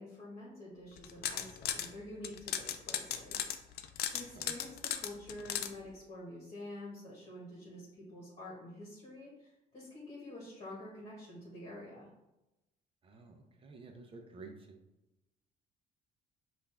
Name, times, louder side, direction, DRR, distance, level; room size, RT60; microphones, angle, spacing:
voice 1, 0.0-3.5 4.1-12.1, left 1 dB, 35° left, -6 dB, 1.5 m, -48 dB
sound 1, 1.0-1.9 2.2-5.7, left 10 dB, 70° left, 0.4 m, -36 dB
voice 2, 13.0-14.8, right 3 dB, 30° right, 4 dB, 0.7 m, -51 dB
5.3 x 2.6 x 3.4 m, 0.97 s
cardioid pair, 110°, 17 cm